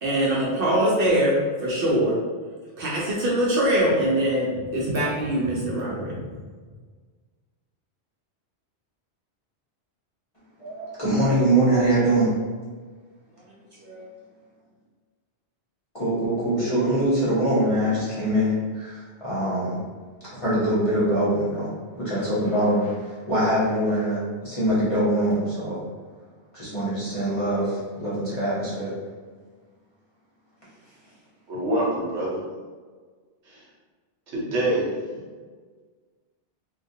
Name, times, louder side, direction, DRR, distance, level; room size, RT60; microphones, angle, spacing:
voice 1, 0.0-2.2 2.8-6.3 13.8-14.0, right 1 dB, 65° right, -5 dB, 0.7 m, -23 dB
voice 2, 10.6-12.3 15.9-19.8 20.3-25.8 26.5-28.9, right 1 dB, 35° left, -10 dB, 0.8 m, -23 dB
voice 3, 31.5-32.3 33.5-33.6 34.3-34.9, right 1 dB, 80° right, -4 dB, 1.0 m, -25 dB
2.2 x 2.2 x 2.6 m, 1.5 s
omnidirectional pair, 1.2 m